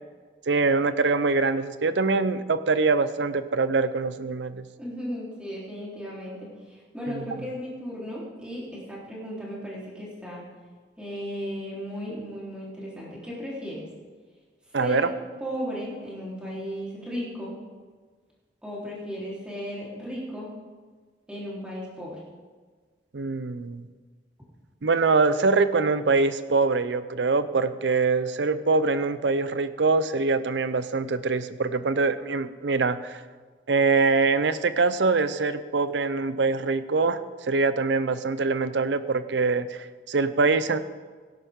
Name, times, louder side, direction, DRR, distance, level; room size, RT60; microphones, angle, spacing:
voice 1, 0.5-4.6 7.1-7.4 14.7-15.1 23.1-23.9 24.8-33.2 33.7-40.8, right 4 dB, 80° right, 13 dB, 0.6 m, -24 dB
voice 2, 4.8-10.4 11.0-13.8 14.8-15.0 15.4-17.7 18.6-20.6 21.3-22.2, equal, 5° right, -6 dB, 3.7 m, -35 dB
17.0 x 11.0 x 3.7 m, 1.5 s
head